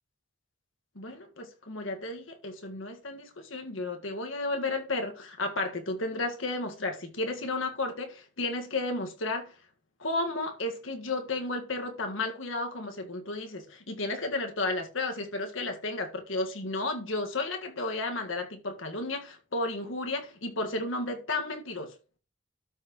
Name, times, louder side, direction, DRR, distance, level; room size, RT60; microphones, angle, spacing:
voice 1, 0.9-9.5 10.0-21.9, left 2 dB, 85° left, 1.7 m, -33 dB
12.5 x 5.8 x 3.0 m
head